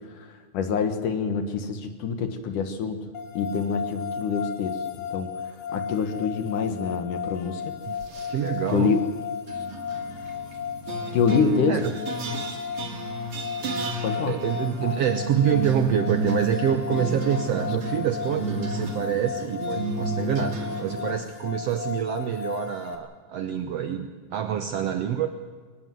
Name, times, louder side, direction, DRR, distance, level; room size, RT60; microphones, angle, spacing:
voice 1, 0.0-3.1 3.3-4.8 5.1-7.6 8.7-9.0 11.1-11.8 14.0-14.4, left 6 dB, 65° left, 8 dB, 2.8 m, -26 dB
sound 1, 3.1-23.0, left 7 dB, 85° left, 4.0 m, -35 dB
sound 2, 7.9-8.5 9.5-21.1, right 2 dB, 40° right, 2.6 m, -32 dB
voice 2, 8.3-8.9 11.7-11.9 14.3-25.3, right 9 dB, 80° right, 8 dB, 1.4 m, -26 dB
23.0 x 19.5 x 7.8 m, 1.5 s
omnidirectional pair, 4.3 m